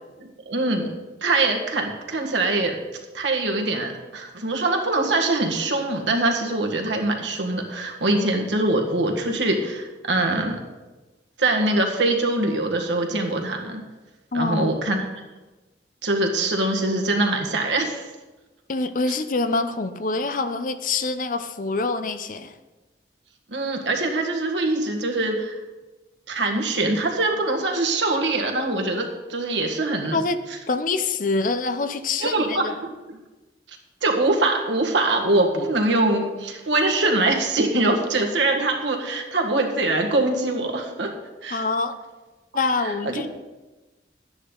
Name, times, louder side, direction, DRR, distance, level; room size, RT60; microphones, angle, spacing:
voice 1, 0.5-0.9 1.2-2.8 3.1-10.6 11.4-13.8 14.3-15.0 16.0-18.1 23.5-25.6 26.3-30.2 32.2-32.8 33.1-33.2 34.0-41.1 41.4-41.6 42.8-43.3, right 2 dB, 85° right, 2 dB, 1.7 m, -23 dB
voice 2, 14.3-14.8 18.7-22.5 30.1-30.4 30.7-32.7 41.5-42.0 42.5-43.3, left 3 dB, 45° left, 11 dB, 0.6 m, -25 dB
12.5 x 9.9 x 3.9 m, 1.2 s
head